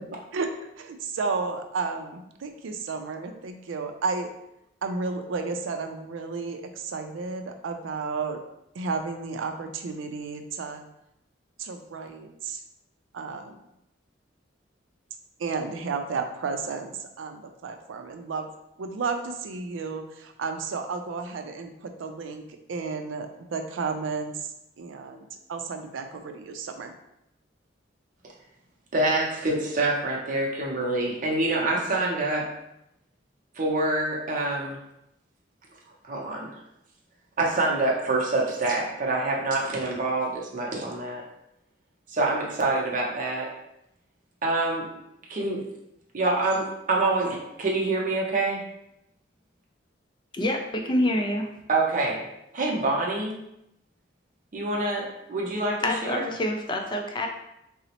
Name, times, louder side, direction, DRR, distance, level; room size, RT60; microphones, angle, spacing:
voice 1, 0.3-4.3 4.8-8.4 8.7-10.8 11.6-12.6 13.1-13.6 15.4-18.5 18.8-22.4 22.7-26.9, right 4 dB, 85° right, 6 dB, 0.4 m, -32 dB
voice 2, 28.9-32.5 33.6-34.8 36.1-36.5 37.4-41.2 42.1-43.5 44.4-44.9 45.3-45.6 46.1-48.6 51.7-52.3 52.5-53.4 54.5-56.3, right 2 dB, 45° right, -2 dB, 0.6 m, -26 dB
voice 3, 50.3-51.5 55.8-57.3, left 1 dB, 25° left, 3 dB, 0.3 m, -26 dB
3.9 x 2.0 x 2.8 m, 0.83 s
head